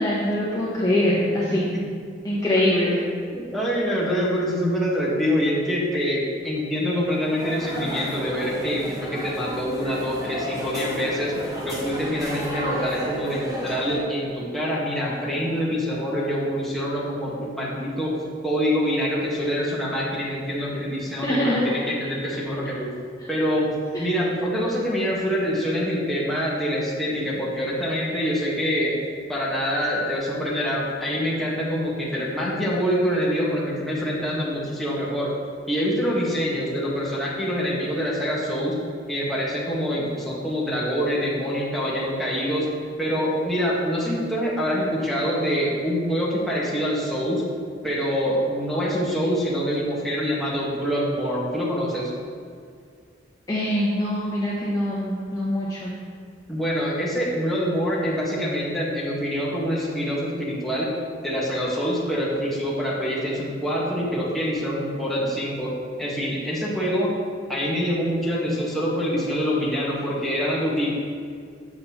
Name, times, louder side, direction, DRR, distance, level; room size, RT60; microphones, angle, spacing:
voice 1, 0.0-1.6 2.2-3.0 21.2-21.6 23.2-23.3 23.9-24.1 53.5-55.9, left 1 dB, 20° left, -7 dB, 0.9 m, -23 dB
voice 2, 3.3-11.3 11.6-18.1 18.4-22.9 23.3-23.7 24.0-28.9 29.3-35.3 35.7-38.8 39.1-42.7 43.0-47.4 47.8-52.1 56.5-60.9 61.2-65.7 66.0-67.1 67.5-71.0, equal, ahead, -7 dB, 1.3 m, -25 dB
sound 1, 6.9-14.0, equal, 20° right, 1.1 m, -33 dB
7.5 x 6.7 x 2.9 m, 2.2 s
head